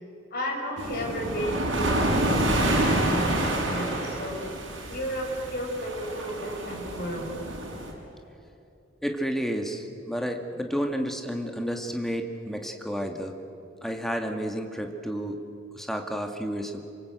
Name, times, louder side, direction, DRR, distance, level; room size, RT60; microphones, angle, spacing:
voice 1, 0.3-2.2 2.5-3.4 3.6-4.5 4.9-7.3, equal, 55° left, 1 dB, 6.1 m, -33 dB
sound 1, 0.8-7.9, right 1 dB, 80° right, 5.8 m, -28 dB
voice 2, 9.0-13.4 13.8-15.4 15.7-16.8, equal, ahead, 3 dB, 1.9 m, -31 dB
27.5 x 25.0 x 8.1 m, 2.7 s
head